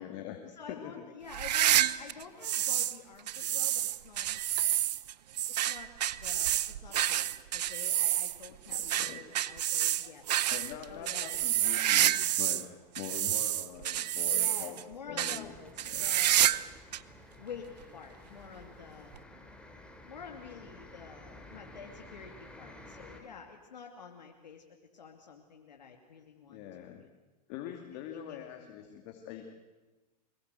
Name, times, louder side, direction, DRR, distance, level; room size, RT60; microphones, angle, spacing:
voice 1, 0.0-0.4 0.7-1.1 8.7-9.2 10.4-12.7 12.9-15.5 15.8-16.1 26.5-27.1 27.5-29.4, left 10 dB, 50° left, 4 dB, 2.5 m, -44 dB
voice 2, 0.5-4.3 5.7-10.2 10.9-11.4 14.2-16.8 17.4-19.2 20.1-27.1 27.9-28.4, left 6 dB, 90° left, 3 dB, 2.6 m, -49 dB
sound 1, 1.3-3.0 3.3-12.7 13.0-14.8 15.2-15.4 15.8-16.7 16.9-17.0 17.8-17.9 19.1-19.2, right 12 dB, 75° right, 0.9 m, -29 dB
sound 2, 15.4-23.2, left 1 dB, 5° left, 3.6 m, -52 dB
23.5 x 21.0 x 8.2 m, 1.2 s
hypercardioid pair, 115°, 21 cm